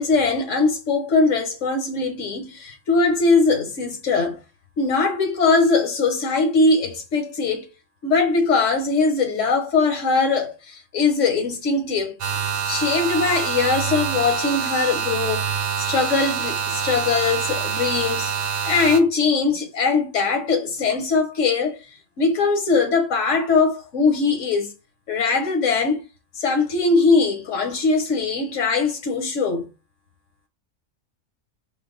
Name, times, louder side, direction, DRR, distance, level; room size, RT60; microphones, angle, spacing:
voice 1, 0.0-4.4 4.8-7.7 8.0-12.1 12.7-15.5 15.8-18.3 18.6-21.8 22.2-24.7 25.1-26.0 26.4-29.7, left 4 dB, 75° left, 1.3 m, -21 dB
sound 1, 12.2-19.0, right 7 dB, 60° right, 0.4 m, -26 dB
5.1 x 2.1 x 3.8 m
omnidirectional pair, 1.3 m